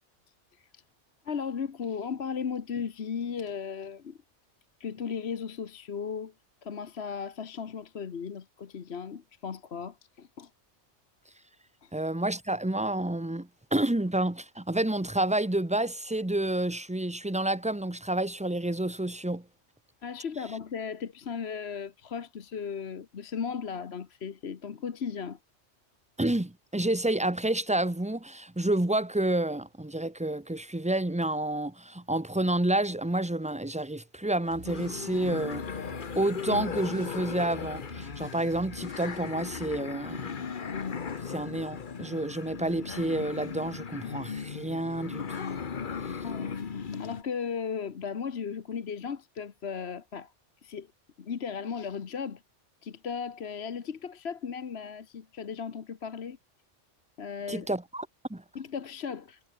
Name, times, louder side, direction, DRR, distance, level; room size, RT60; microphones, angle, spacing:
voice 1, 0.5-0.8 1.2-4.2 4.8-6.3 6.6-10.5 11.8-11.9 20.0-25.4 46.2-50.3 50.6-50.9 51.2-52.4 52.8-56.4 57.2-57.7 58.5-59.4, left 6 dB, 60° left, 1.4 m, -36 dB
voice 2, 11.9-19.4 26.2-35.6 36.1-40.3 41.3-45.4 46.1-46.2 57.5-58.4, right 1 dB, 5° right, 0.9 m, -29 dB
sound 1, 34.4-39.8, right 1 dB, 50° right, 5.9 m, -49 dB
sound 2, 34.7-47.2, left 6 dB, 45° left, 1.2 m, -37 dB
omnidirectional pair, 1.2 m